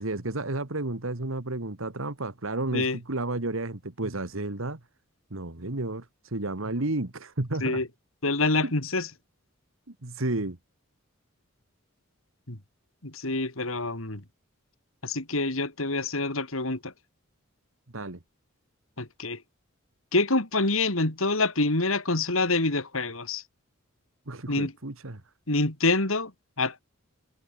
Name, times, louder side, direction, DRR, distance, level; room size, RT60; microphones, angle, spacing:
voice 1, 0.0-4.8 5.3-7.8 8.6-8.7 9.9-10.6 17.9-18.2 24.3-25.2, right 2 dB, 70° right, 1.9 m, -32 dB
voice 2, 8.2-9.1 12.5-12.6 13.0-14.2 15.0-16.9 19.0-19.4 20.1-23.4 24.5-24.7 25.5-26.3 26.6-26.8, left 3 dB, 75° left, 3.5 m, -26 dB
head